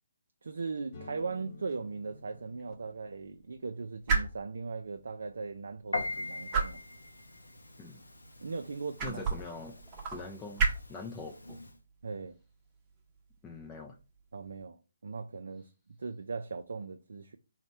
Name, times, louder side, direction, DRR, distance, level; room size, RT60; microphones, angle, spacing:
voice 1, 0.4-6.8 8.4-9.2 12.0-12.4 14.3-15.7 16.0-17.4, right 4 dB, 65° right, 0.3 m, -39 dB
sound 1, 0.9-8.5, left 2 dB, 35° left, 0.8 m, -56 dB
sound 2, 1.1-14.6, right 4 dB, 25° right, 0.7 m, -38 dB
Piano, 5.9-11.8, left 3 dB, 85° left, 0.6 m, -42 dB
voice 2, 9.0-9.8 10.1-11.6 13.4-14.0, left 3 dB, 15° left, 0.4 m, -43 dB
3.2 x 2.1 x 4.0 m
figure-of-eight pair, 145°, 0 cm